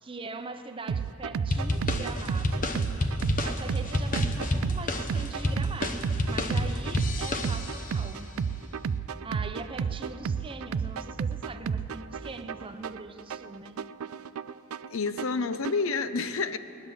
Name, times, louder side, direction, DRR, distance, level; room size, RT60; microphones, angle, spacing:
voice 1, 0.0-2.8 3.4-8.4 9.2-13.8, right 3 dB, 25° right, 7 dB, 0.7 m, -42 dB
sound 1, 0.9-15.9, right 6 dB, 85° right, 0.4 m, -33 dB
sound 2, 1.5-7.9, left 1 dB, 40° left, 0.8 m, -29 dB
voice 2, 14.9-16.6, left 4 dB, 70° left, 12 dB, 0.6 m, -29 dB
19.5 x 10.5 x 7.1 m, 2.9 s
head